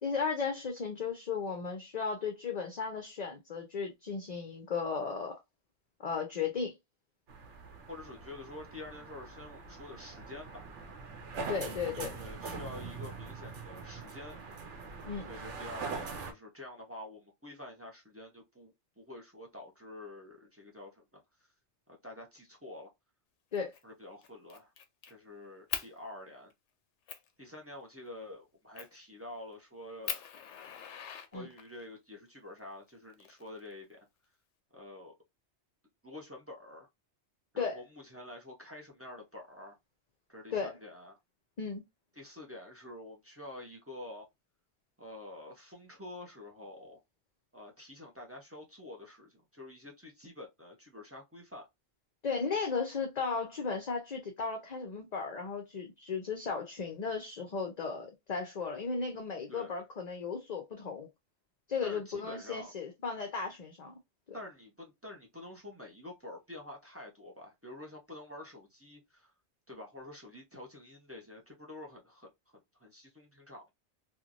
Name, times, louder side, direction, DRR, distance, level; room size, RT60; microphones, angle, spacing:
voice 1, 0.0-5.4 6.0-6.7 11.5-12.2 15.0-15.3 23.5-23.7 31.3-31.5 37.6-37.8 40.5-40.7 41.6-41.8 52.2-61.1 61.7-63.9 64.3-64.4, left 5 dB, 45° left, 0.6 m, -35 dB
sound 1, 7.3-16.3, right 4 dB, 90° right, 1.0 m, -43 dB
voice 2, 7.9-10.7 12.2-14.4 15.3-21.2 21.9-22.9 23.8-24.7 25.1-26.5 27.4-30.2 31.3-34.0 34.7-35.1 36.0-36.9 37.5-39.8 40.3-41.2 42.2-44.3 45.0-47.0 47.5-51.6 59.5-59.7 61.8-62.7 64.3-69.3 69.7-73.7, left 1 dB, 15° right, 0.6 m, -48 dB
Fire, 23.5-23.8 24.2-25.1 25.7-25.9 26.5-26.6 27.1-27.3 28.8-29.0 29.5-29.6 30.0-31.8 32.9-33.8, left 8 dB, 85° left, 0.9 m, -40 dB
3.0 x 2.4 x 2.5 m
omnidirectional pair, 1.2 m